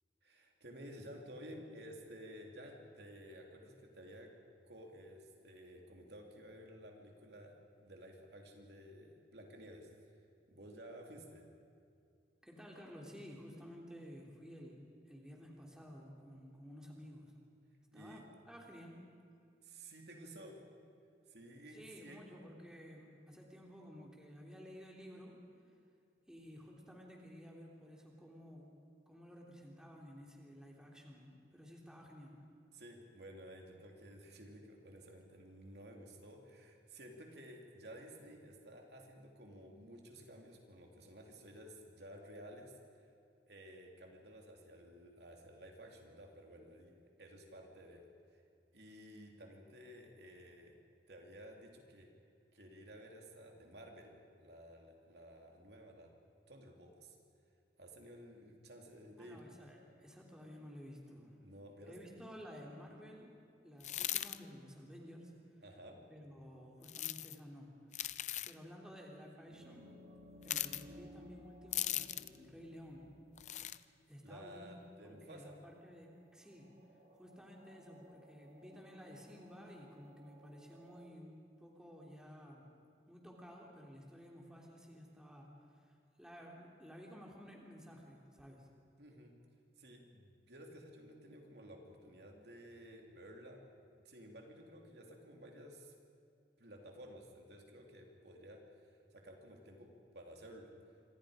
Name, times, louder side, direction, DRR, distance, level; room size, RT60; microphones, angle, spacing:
voice 1, 0.2-4.3 4.6-9.9 10.5-11.4 17.9-18.2 19.6-20.6 21.3-22.2 32.7-42.7 43.5-48.0 48.3-48.4 48.7-50.8 51.1-52.1 52.5-56.1 56.5-57.2 57.8-59.4 61.4-62.0 65.6-66.0 74.2-75.6 89.0-89.3 89.8-93.6 94.0-95.9 96.6-99.9 100.1-100.7, equal, 65° right, 1 dB, 3.0 m, -54 dB
voice 2, 12.4-17.3 17.9-19.0 21.7-25.4 26.3-28.7 29.1-32.3 59.2-61.3 61.8-63.3 63.6-65.3 66.1-67.7 68.4-69.8 70.4-73.0 74.1-74.7 75.0-76.7 77.1-82.7 83.1-85.5 85.7-88.7, equal, 5° right, -2 dB, 3.4 m, -53 dB
sound 1, 63.8-64.4 66.8-67.4 67.9-68.5 70.4-70.8 71.7-72.4 73.4-73.8, left 12 dB, 40° left, 0.6 m, -38 dB
sound 2, 69.5-73.8 75.8-75.9 76.3-81.1, left 1 dB, 45° right, 3.1 m, -59 dB
27.0 x 25.5 x 5.1 m, 2.4 s
head